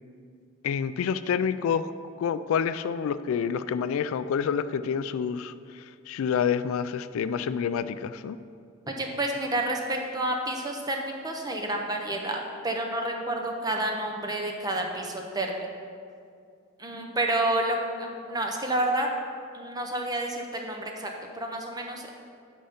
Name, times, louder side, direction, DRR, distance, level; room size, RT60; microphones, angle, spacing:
voice 1, 0.6-1.9 2.2-8.4, left 7 dB, 80° left, 14 dB, 0.3 m, -28 dB
voice 2, 8.9-15.6 16.8-19.1 19.5-22.1, right 1 dB, 20° right, 2 dB, 0.8 m, -29 dB
7.8 x 5.4 x 5.1 m, 2.3 s
head